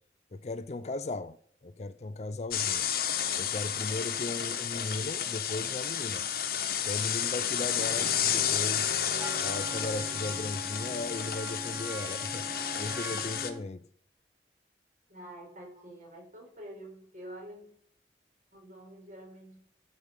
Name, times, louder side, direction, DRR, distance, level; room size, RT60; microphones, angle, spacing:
voice 1, 0.3-1.4 1.6-2.9 3.4-6.3 6.8-9.0 9.4-12.4 12.8-13.9, left 2 dB, 40° left, 0.5 m, -37 dB
sound 1, 2.5-13.5, left 9 dB, 55° left, 1.2 m, -31 dB
Wind instrument woodwind instrument, 9.2-13.7, right 2 dB, 10° right, 1.0 m, -42 dB
voice 2, 15.1-17.7 18.5-19.6, right 1 dB, 45° right, 4.4 m, -47 dB
11.5 x 5.2 x 8.1 m
head